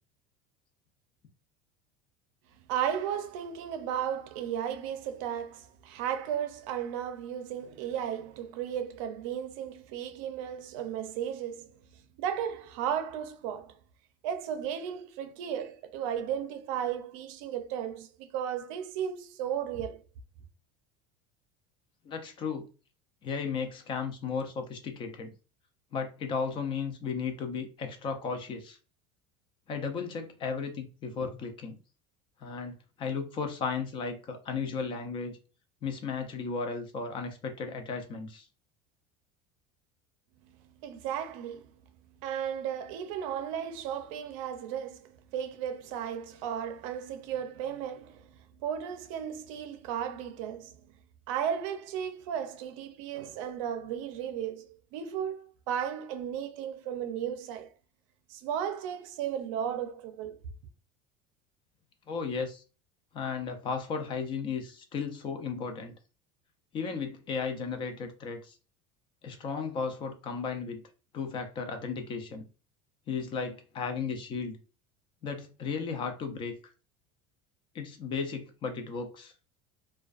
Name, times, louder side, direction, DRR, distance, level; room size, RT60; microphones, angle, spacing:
voice 1, 2.7-11.8 12.2-13.8 14.2-20.0 40.4-41.7 42.2-50.9 51.3-57.7 58.3-60.4, right 9 dB, 75° right, 0.5 m, -35 dB
voice 2, 22.0-22.6 23.2-25.3 25.9-28.8 29.7-31.8 32.4-35.4 35.8-38.5 62.1-62.6 63.1-65.9 66.7-68.6 69.2-70.8 71.1-72.4 73.1-74.6 75.2-76.5 77.7-79.3, left 5 dB, 30° left, 0.4 m, -35 dB
2.4 x 2.2 x 2.3 m
cardioid pair, 155°, 17 cm